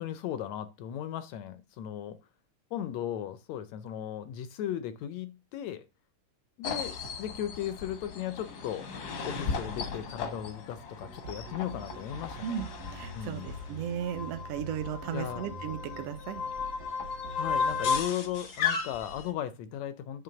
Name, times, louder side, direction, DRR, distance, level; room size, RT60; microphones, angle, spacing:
voice 1, 0.0-2.2 2.7-5.8 6.6-8.9 9.2-12.6 13.1-13.5 15.1-15.5 17.4-20.2, left 10 dB, 80° left, 1.6 m, -36 dB
sound 1, 6.6-19.3, left 5 dB, 65° left, 1.0 m, -35 dB
sound 2, 11.0-18.0, right 2 dB, 85° right, 3.0 m, -46 dB
voice 2, 12.4-16.4, right 9 dB, 70° right, 1.5 m, -36 dB
9.1 x 3.3 x 6.8 m
omnidirectional pair, 3.7 m